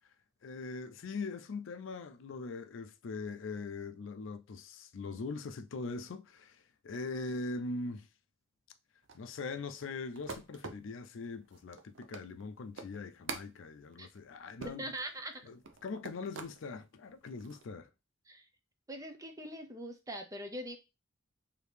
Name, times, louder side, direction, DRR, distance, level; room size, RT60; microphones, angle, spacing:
voice 1, 0.4-8.1 9.1-14.9 15.4-15.6 15.8-17.9, left 3 dB, 65° left, 0.4 m, -41 dB
sound 1, 9.0-16.6 17.1-17.6, right 4 dB, 65° right, 0.6 m, -47 dB
voice 2, 14.6-15.4 18.3-18.5 18.9-20.8, right 1 dB, 15° right, 0.6 m, -42 dB
4.9 x 2.7 x 3.3 m
head